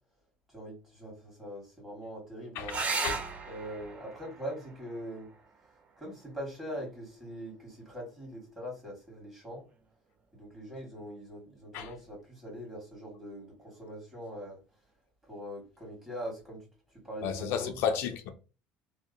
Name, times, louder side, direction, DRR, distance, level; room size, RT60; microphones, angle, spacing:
voice 1, 0.5-2.8 3.5-5.3 6.0-9.6 10.3-14.6 15.3-16.6 17.0-17.7, equal, 10° right, 1.3 m, -42 dB
sound 1, 2.7-7.7 9.6-10.2 13.7-13.8 14.1-14.2, right 4 dB, 35° right, 0.4 m, -39 dB
voice 2, 17.2-18.3, left 7 dB, 70° left, 0.4 m, -32 dB
2.7 x 2.0 x 2.5 m
cardioid pair, 115°, 4 cm